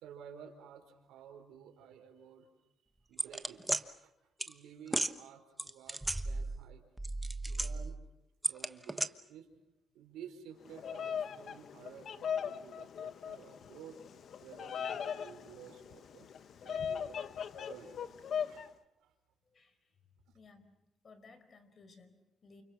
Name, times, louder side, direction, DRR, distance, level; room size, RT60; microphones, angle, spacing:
voice 1, 0.0-2.5 3.0-3.7 4.0-4.1 4.5-6.8 7.4-8.0 8.5-9.5 9.9-14.0 14.4-16.3 16.6-17.2 17.5-18.1 18.4-19.1 20.3-20.4, right 8 dB, 90° right, 4 dB, 4.7 m, -53 dB
sound 1, 3.2-3.8 4.4-4.5 4.9-5.1 5.6-6.7 7.0-8.0 8.4-9.1, right 2 dB, 10° right, 1.1 m, -34 dB
Bird vocalization bird call bird song, 10.6-18.7, left 7 dB, 60° left, 1.1 m, -39 dB
voice 2, 19.5-19.9 20.3-20.6 21.0-22.6, left 4 dB, 45° left, 10 dB, 4.6 m, -59 dB
30.0 x 29.0 x 6.0 m, 0.84 s
cardioid pair, 90°, 0 cm